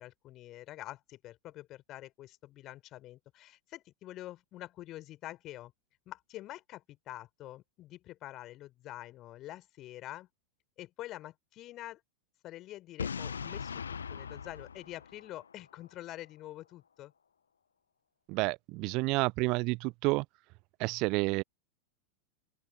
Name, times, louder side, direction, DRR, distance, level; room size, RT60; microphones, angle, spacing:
voice 1, 0.0-5.7 6.1-10.3 10.8-12.0 12.4-13.8 14.1-17.1, left 15 dB, 35° left, 4.3 m, -46 dB
Boom, 13.0-15.9, left 6 dB, 70° left, 1.0 m, -40 dB
voice 2, 18.3-20.2 20.8-21.4, right 25 dB, 40° right, 0.8 m, -30 dB
open air
figure-of-eight pair, 90°, 0 cm